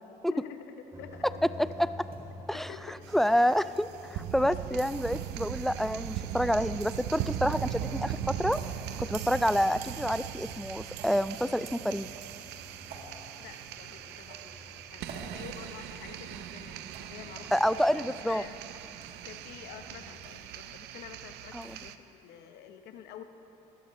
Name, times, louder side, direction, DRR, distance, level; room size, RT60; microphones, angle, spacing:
voice 1, 0.3-1.8 2.5-3.0 13.4-17.8 18.3-18.5 19.2-23.2, left 9 dB, 70° left, 8 dB, 0.9 m, -48 dB
sound 1, 0.9-20.3, left 1 dB, 20° right, 2.4 m, -50 dB
voice 2, 1.4-1.9 2.5-2.7 3.1-8.6 9.0-12.1 17.5-18.4 21.5-21.8, equal, ahead, 14 dB, 0.3 m, -28 dB
sound 2, 2.0-2.2 3.1-3.7 4.7-5.6 6.6-6.8 7.6-8.0 8.5-8.7 9.7-10.3 11.0-11.2 12.0-12.3 12.9-13.1 14.1-14.6 15.1-15.3 16.3-16.6 16.9-17.0, right 5 dB, 60° right, 2.2 m, -50 dB
sound 3, 3.0-21.9, right 11 dB, 75° right, 0.6 m, -39 dB
21.5 x 12.5 x 3.1 m, 3.0 s
supercardioid pair, 80°, 17 cm